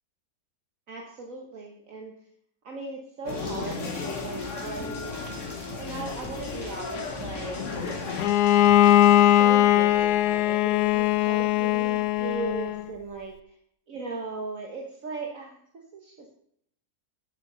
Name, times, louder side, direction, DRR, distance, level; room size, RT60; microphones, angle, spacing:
voice 1, 0.9-2.1 2.6-5.2 5.6-7.6 9.1-13.3 13.9-15.6 15.9-16.3, right 3 dB, 60° right, 1 dB, 1.6 m, -38 dB
sound 1, 3.2-8.3, left 4 dB, 55° left, 1.6 m, -34 dB
sound 2, 3.3-9.2, equal, 15° left, 2.0 m, -44 dB
Bowed string instrument, 8.2-12.9, left 13 dB, 85° left, 1.1 m, -20 dB
9.6 x 6.8 x 6.7 m, 0.68 s
omnidirectional pair, 1.6 m